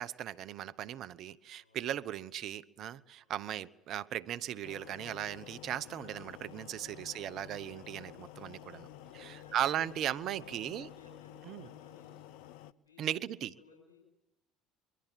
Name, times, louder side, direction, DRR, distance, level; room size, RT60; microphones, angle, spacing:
voice 1, 0.0-8.9 9.2-10.9 11.5-11.7 13.0-13.5, right 11 dB, 55° right, 1.0 m, -37 dB
voice 2, 1.5-1.9 3.2-3.4 9.0-9.9 10.4-12.2 12.8-14.0, left 4 dB, 90° left, 5.7 m, -61 dB
sound 1, 4.6-12.7, left 12 dB, 70° left, 0.8 m, -51 dB
sound 2, 5.2-11.1, left 8 dB, 55° left, 4.8 m, -63 dB
25.0 x 23.5 x 7.5 m
hypercardioid pair, 70°, 0 cm